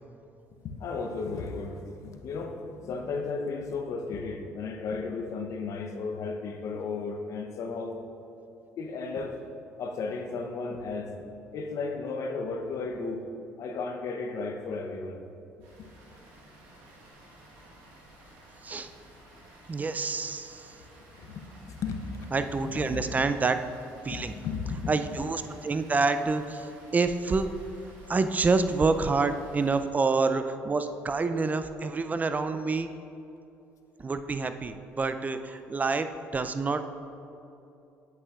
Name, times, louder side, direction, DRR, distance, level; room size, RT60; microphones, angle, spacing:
voice 1, 0.6-8.0 8.8-9.4 9.8-11.1 11.5-13.2 13.6-15.2 15.8-15.9 21.1-22.4 22.6-23.2 24.1-24.9, left 4 dB, 60° left, 4 dB, 0.8 m, -34 dB
Water, 15.6-29.8, right 1 dB, 85° right, 1.4 m, -53 dB
voice 2, 19.7-20.7 22.3-23.6 24.0-24.3 24.9-27.5 28.1-32.9 34.0-36.9, right 4 dB, 25° right, 10 dB, 0.4 m, -27 dB
8.3 x 8.1 x 2.4 m, 2.8 s
supercardioid pair, 70°, 6 cm